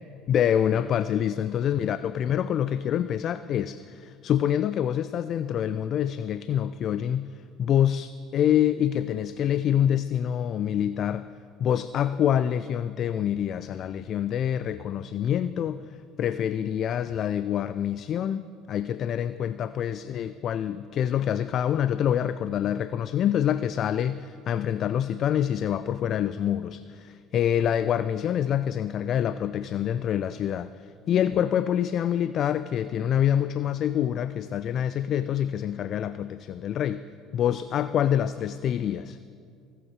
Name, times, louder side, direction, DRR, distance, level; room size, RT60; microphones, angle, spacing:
voice 1, 0.3-11.3 11.6-37.0 37.3-39.2, left 10 dB, 50° left, 14 dB, 0.4 m, -26 dB
23.5 x 8.0 x 4.7 m, 2.4 s
hypercardioid pair, 70°, 0 cm